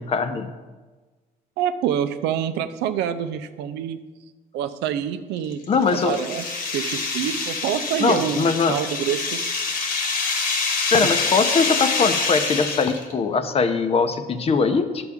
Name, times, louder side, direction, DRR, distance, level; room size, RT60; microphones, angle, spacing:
voice 1, 0.1-0.5 5.7-6.2 8.0-8.7 10.9-15.1, left 5 dB, 35° left, 9 dB, 0.7 m, -21 dB
voice 2, 1.6-4.0 4.5-6.4 6.7-9.4 10.9-11.1, right 9 dB, 85° right, 10 dB, 0.6 m, -26 dB
sound 1, 5.4-13.1, left 4 dB, 60° left, 1.4 m, -26 dB
10.5 x 6.9 x 3.6 m, 1.3 s
cardioid pair, 110°, 17 cm